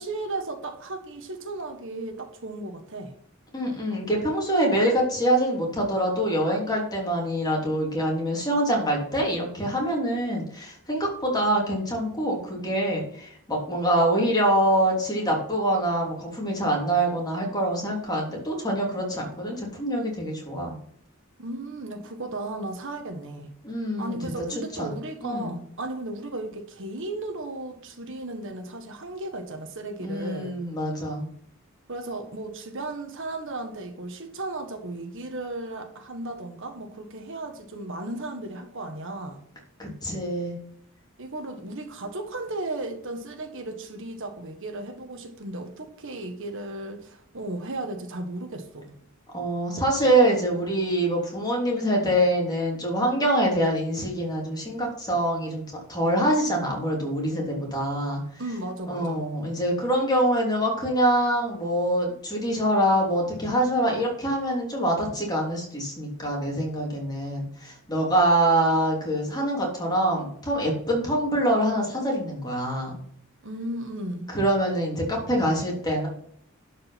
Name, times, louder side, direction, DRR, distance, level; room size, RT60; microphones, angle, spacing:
voice 1, 0.0-3.1 21.4-23.5 24.0-30.6 31.9-39.4 41.2-49.0 58.4-59.4 73.4-74.3, right 2 dB, 65° right, 1.6 m, -35 dB
voice 2, 3.5-20.7 23.6-24.3 24.8-24.9 25.2-25.6 30.0-31.3 39.8-40.6 49.3-55.6 55.9-58.4 58.9-73.0 74.3-76.1, right 1 dB, 20° left, 3.3 m, -25 dB
11.5 x 5.2 x 5.8 m
head